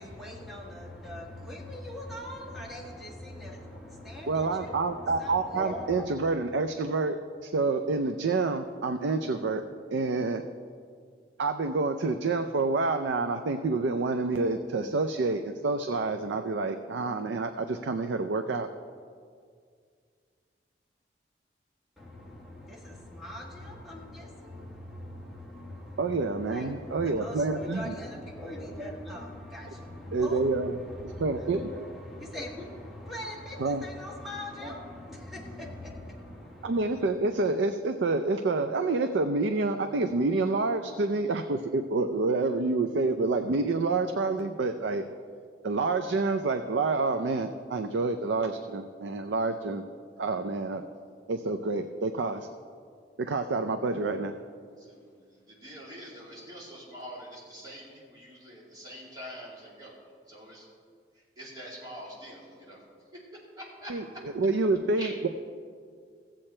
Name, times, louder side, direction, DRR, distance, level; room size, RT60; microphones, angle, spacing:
voice 1, 0.0-6.0 22.0-37.1, left 1 dB, ahead, -4 dB, 1.6 m, -41 dB
voice 2, 4.3-9.6 9.9-10.4 11.4-18.7 26.0-27.9 30.1-30.7 31.2-31.6 33.6-33.8 36.6-45.0 45.6-49.8 50.2-50.8 51.3-52.5 53.3-54.3 63.9-64.0 64.4-65.3, right 3 dB, 85° right, 7 dB, 0.5 m, -28 dB
voice 3, 54.8-59.9 60.3-60.7 61.4-62.8 63.6-63.9 65.0-65.3, equal, 20° right, -5 dB, 2.5 m, -45 dB
15.0 x 7.7 x 4.4 m, 2.1 s
head